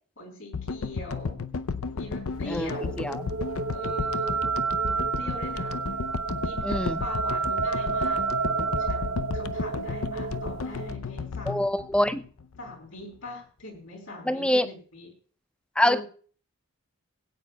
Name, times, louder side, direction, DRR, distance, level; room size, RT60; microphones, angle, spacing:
voice 1, 0.2-1.4 1.9-3.0 3.7-4.5 4.8-5.7 6.4-11.7 12.6-15.1 15.8-16.0, left 1 dB, 65° left, 1 dB, 4.3 m, -41 dB
sound 1, 0.5-12.9, left 4 dB, 80° left, 0.6 m, -33 dB
sound 2, 2.3-10.9, right 5 dB, 80° right, 0.7 m, -30 dB
voice 2, 6.6-7.0 11.5-12.2 14.3-14.7 15.8-16.0, left 1 dB, 5° left, 12 dB, 0.5 m, -24 dB
21.0 x 8.9 x 2.3 m, 0.41 s
head